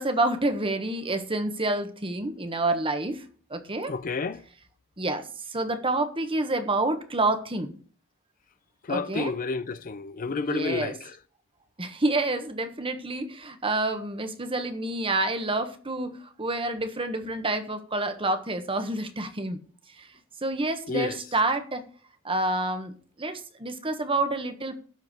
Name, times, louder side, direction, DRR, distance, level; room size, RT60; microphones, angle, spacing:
voice 1, 0.0-3.2 3.5-3.9 5.0-7.7 8.9-9.3 10.3-11.0 11.8-19.6 20.0-20.1 20.4-21.8 22.2-24.7, right 2 dB, 25° right, 1.3 m, -28 dB
voice 2, 3.9-4.4 8.9-11.1 20.9-21.2, left 4 dB, 45° left, 0.5 m, -30 dB
12.0 x 4.7 x 7.9 m
head